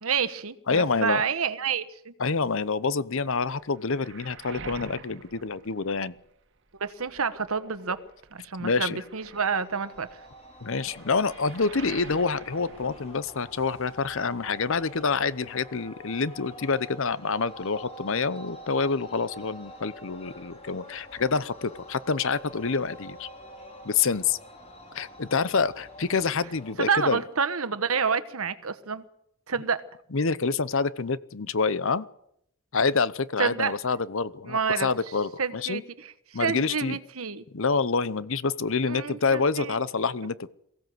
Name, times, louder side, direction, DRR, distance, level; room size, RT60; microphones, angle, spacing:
voice 1, 0.0-2.1 6.8-8.0 8.3-10.2 26.8-29.0 29.5-29.8 33.4-33.8 34.5-34.9 35.4-37.4 38.9-39.8, right 6 dB, 75° right, 1.2 m, -28 dB
voice 2, 0.7-1.2 2.2-6.1 8.6-9.0 10.6-23.3 23.8-24.4 24.9-27.2 30.1-32.1 32.7-35.8 36.3-37.0 37.5-40.5, left 4 dB, 60° left, 0.8 m, -27 dB
Waves surf, 3.3-6.5 6.8-13.8 14.0-15.0, right 4 dB, 55° right, 1.7 m, -47 dB
sound 1, 9.3-26.7, left 1 dB, 30° left, 3.6 m, -46 dB
23.0 x 16.0 x 7.8 m
head